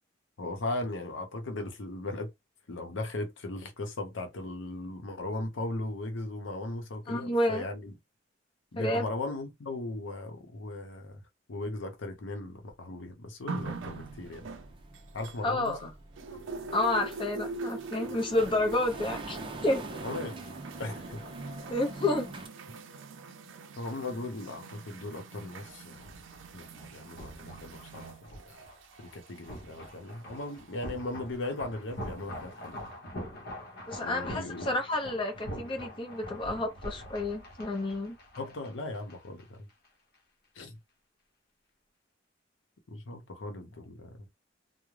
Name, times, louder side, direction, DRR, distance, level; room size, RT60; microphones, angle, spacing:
voice 1, 0.4-2.3 2.7-7.9 8.7-11.2 11.5-14.5 15.1-15.9 20.0-20.3 20.8-21.2 23.8-26.1 26.5-28.6 29.0-32.8 34.0-34.7 38.4-39.7 40.6-40.8 42.9-44.2, left 2 dB, 90° left, 0.7 m, -38 dB
voice 2, 7.1-7.7 8.8-9.0 15.4-15.9 16.3-16.4 16.7-19.8 21.7-22.3 33.9-38.2, left 2 dB, 25° left, 0.6 m, -30 dB
sound 1, 13.5-15.8 16.2-30.9 31.8-31.9, right 4 dB, 80° right, 0.4 m, -43 dB
sound 2, 13.6-22.5, right 2 dB, 25° right, 0.4 m, -45 dB
sound 3, 25.6-39.4 39.7-39.9, equal, 55° left, 0.8 m, -44 dB
2.4 x 2.1 x 3.1 m
head